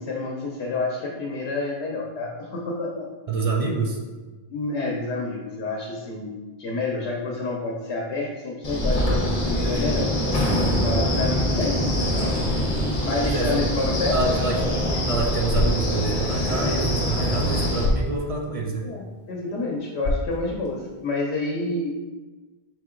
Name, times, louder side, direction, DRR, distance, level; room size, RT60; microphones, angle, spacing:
voice 1, 0.0-3.1 4.5-10.1 10.8-12.6 13.0-14.2 18.8-22.0, left 2 dB, 85° left, -1 dB, 0.9 m, -29 dB
voice 2, 3.3-4.0 13.2-14.7 15.0-18.9, right 3 dB, 40° right, 0 dB, 0.6 m, -27 dB
Wind, 8.6-17.8, equal, 40° left, 1.0 m, -24 dB
sound 1, 14.3-21.2, left 1 dB, 60° left, 1.0 m, -32 dB
4.7 x 2.8 x 3.7 m, 1.3 s
omnidirectional pair, 1.1 m